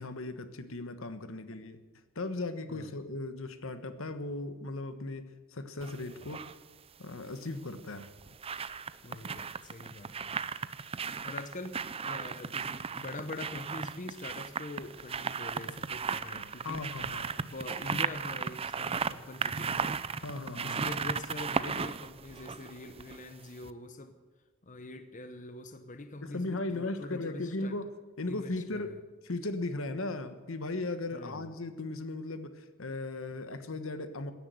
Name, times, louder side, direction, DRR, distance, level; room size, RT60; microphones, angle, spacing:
voice 1, 0.0-1.8 2.1-6.4 7.0-8.1 16.2-16.3 16.6-17.3 20.2-21.0 26.2-29.0 29.2-34.3, left 2 dB, 70° left, 10 dB, 1.3 m, -37 dB
sound 1, 5.8-6.5 7.8-23.3 23.6-23.7, right 5 dB, 25° right, 0.5 m, -36 dB
voice 2, 9.0-10.4 11.2-16.9 17.3-20.0 20.6-24.2 24.6-27.8 28.3-29.0 31.1-31.5, left 2 dB, 40° left, 9 dB, 0.9 m, -44 dB
16.5 x 10.5 x 7.7 m, 1.4 s
head